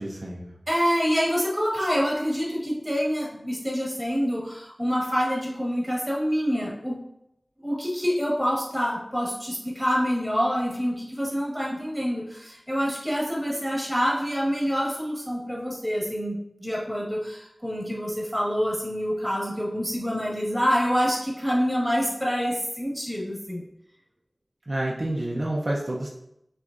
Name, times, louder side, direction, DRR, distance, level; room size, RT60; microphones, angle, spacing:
voice 1, 0.0-0.5 24.7-26.1, right 1 dB, 50° right, -3 dB, 0.7 m, -29 dB
voice 2, 0.7-7.0 7.6-23.6, equal, ahead, -4 dB, 1.7 m, -26 dB
5.9 x 3.3 x 2.6 m, 0.80 s
wide cardioid pair, 45°, 0 cm